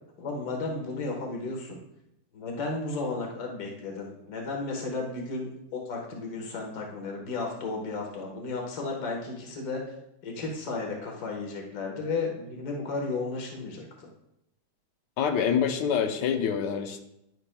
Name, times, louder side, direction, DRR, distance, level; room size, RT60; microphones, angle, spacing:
voice 1, 0.2-1.8 2.3-9.8 10.2-14.1, left 3 dB, 65° left, 0 dB, 1.8 m, -34 dB
voice 2, 15.2-17.0, left 7 dB, 90° left, 5 dB, 1.4 m, -26 dB
10.0 x 7.8 x 2.2 m, 0.81 s
omnidirectional pair, 1.8 m